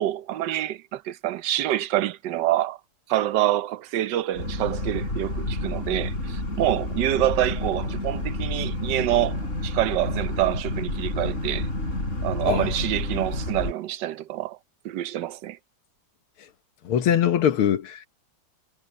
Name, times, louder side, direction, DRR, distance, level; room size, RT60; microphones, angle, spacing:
voice 1, 0.0-2.8 3.1-11.7 12.2-14.6 14.8-15.6, right 14 dB, 65° right, 1.2 m, -26 dB
Boat Water vehicle, 4.3-13.7, left 1 dB, 35° left, 6.6 m, -29 dB
voice 2, 16.9-18.1, left 9 dB, 90° left, 2.1 m, -22 dB
omnidirectional pair, 2.3 m